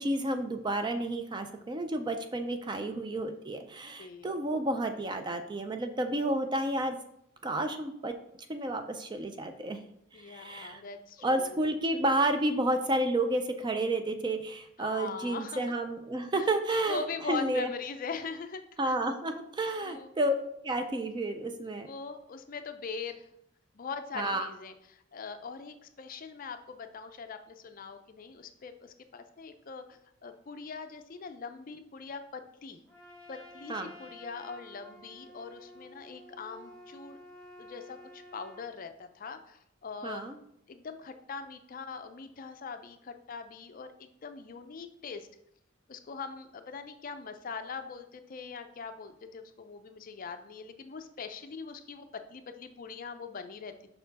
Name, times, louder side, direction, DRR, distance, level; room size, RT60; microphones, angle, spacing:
voice 1, 0.0-7.0 7.4-8.1 8.5-9.8 10.2-10.8 11.2-17.0 17.3-17.7 18.8-20.3 20.6-21.9 24.2-24.5 33.7-33.9 40.0-40.4, right 1 dB, 20° right, 7 dB, 0.4 m, -31 dB
voice 2, 4.0-4.3 10.1-12.0 14.8-15.6 16.3-16.5 16.9-18.9 19.8-20.1 21.7-23.3 23.7-32.8 33.3-37.2 37.6-40.2 40.7-45.3 45.9-53.9, left 5 dB, 40° left, 8 dB, 0.4 m, -42 dB
Trumpet, 32.9-38.7, left 1 dB, 5° left, 1.2 m, -51 dB
5.5 x 4.3 x 4.0 m, 0.76 s
head